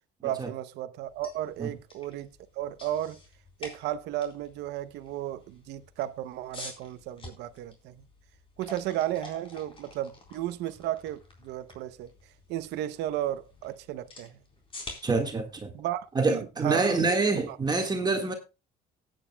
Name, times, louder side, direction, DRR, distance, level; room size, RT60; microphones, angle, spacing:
voice 1, 0.2-2.3 2.5-3.2 3.6-8.0 8.6-12.1 12.5-14.4 15.7-17.0 17.5-17.6, right 12 dB, 85° right, 0.7 m, -34 dB
sound 1, 1.0-16.9, left 2 dB, 30° left, 3.8 m, -49 dB
voice 2, 15.0-15.7 16.1-18.3, right 3 dB, 25° right, 1.6 m, -26 dB
18.5 x 9.1 x 2.2 m
cardioid pair, 110°, 17 cm